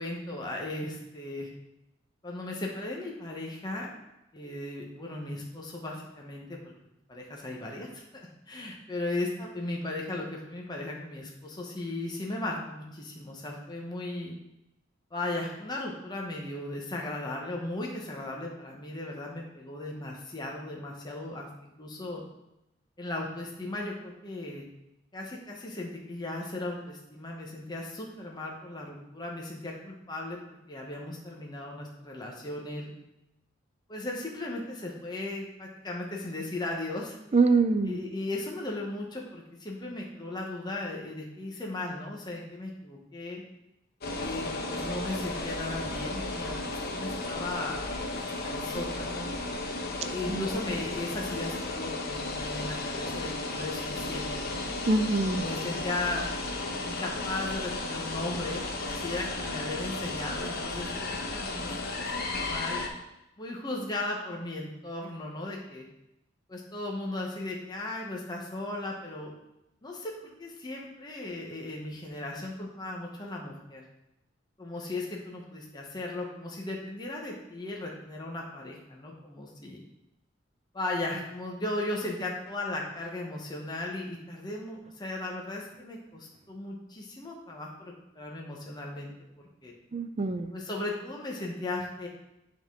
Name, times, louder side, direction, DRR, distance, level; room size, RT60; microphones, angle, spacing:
voice 1, 0.0-1.5 2.2-3.9 4.3-6.7 7.1-8.0 8.5-14.3 15.1-22.2 23.0-24.6 25.1-30.4 30.7-32.9 33.9-37.2 37.9-43.4 44.1-47.8 48.1-49.3 50.0-54.6 55.3-56.3 56.8-62.8 63.4-65.8 66.5-69.3 69.8-70.1 70.4-73.8 74.6-79.8 80.7-89.1 89.4-89.7 90.5-92.1, left 2 dB, 20° left, -2 dB, 0.8 m, -36 dB
voice 2, 37.3-38.0 50.3-50.5 54.9-55.5 89.9-90.5, right 3 dB, 35° right, 9 dB, 0.4 m, -24 dB
sound 1, 44.0-62.9, left 2 dB, 50° left, 0.9 m, -34 dB
9.8 x 3.7 x 3.6 m, 0.89 s
head